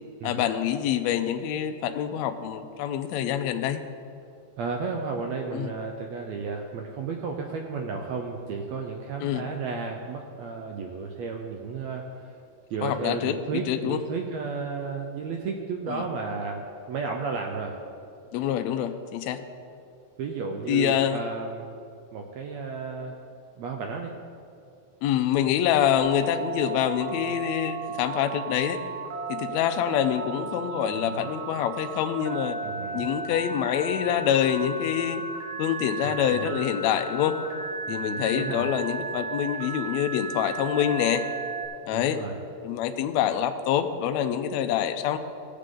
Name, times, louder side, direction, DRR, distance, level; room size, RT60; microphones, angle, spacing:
voice 1, 0.2-3.8 5.5-5.7 9.2-9.4 12.8-14.0 15.9-16.0 18.3-19.4 20.7-21.2 25.0-28.8 29.3-32.6 32.9-35.2 35.6-37.4 37.9-41.2 41.8-42.2 42.6-45.2, left 10 dB, 85° left, 7 dB, 1.5 m, -26 dB
voice 2, 4.6-12.3 12.7-17.8 20.2-21.7 22.1-23.2 23.6-24.1 30.9-31.3 32.6-33.1 36.0-36.6 37.9-38.7 41.9-42.3, right 4 dB, 80° right, 2 dB, 1.5 m, -33 dB
Telephone, 26.0-41.7, right 4 dB, 55° right, 1.9 m, -35 dB
17.0 x 7.6 x 3.8 m, 2.5 s
omnidirectional pair, 3.9 m